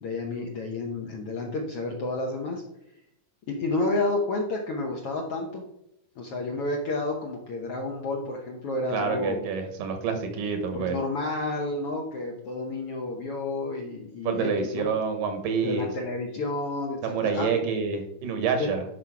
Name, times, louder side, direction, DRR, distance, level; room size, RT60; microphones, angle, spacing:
voice 1, 0.0-2.6 3.5-5.6 6.2-9.4 10.7-14.9 15.6-17.5 18.6-18.7, left 2 dB, 65° left, 0 dB, 1.5 m, -30 dB
voice 2, 8.9-11.0 14.2-15.9 17.0-18.8, right 5 dB, 75° right, 6 dB, 2.7 m, -27 dB
10.0 x 5.7 x 4.8 m, 0.81 s
omnidirectional pair, 3.9 m